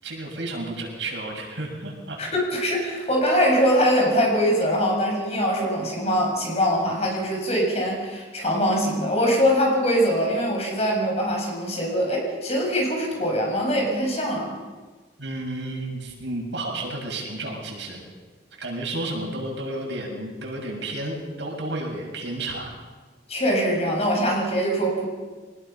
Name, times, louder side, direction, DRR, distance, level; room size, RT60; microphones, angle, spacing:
voice 1, 0.0-2.2 15.2-18.1 18.6-22.7, right 2 dB, 80° right, -1 dB, 7.0 m, -32 dB
voice 2, 2.2-14.5 23.3-25.1, equal, 35° left, 0 dB, 7.0 m, -23 dB
24.5 x 19.5 x 5.7 m, 1.4 s
head